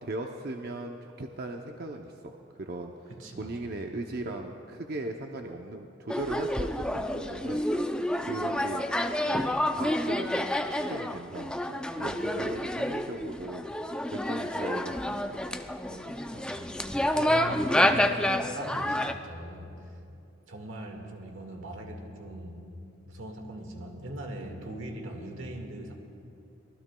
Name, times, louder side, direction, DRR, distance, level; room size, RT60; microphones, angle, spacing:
voice 1, 0.0-2.3 2.6-2.9 3.4-7.6 7.9-8.8 9.3-15.6 15.9-16.1 24.6-24.7, right 2 dB, 50° right, 3 dB, 0.6 m, -38 dB
voice 2, 3.1-3.5 16.3-19.8 20.5-22.7 23.1-26.0, right 1 dB, 90° right, 3 dB, 1.8 m, -41 dB
sound 1, 6.1-19.1, left 1 dB, 5° left, 0.4 m, -29 dB
24.5 x 19.5 x 2.3 m, 2.7 s
head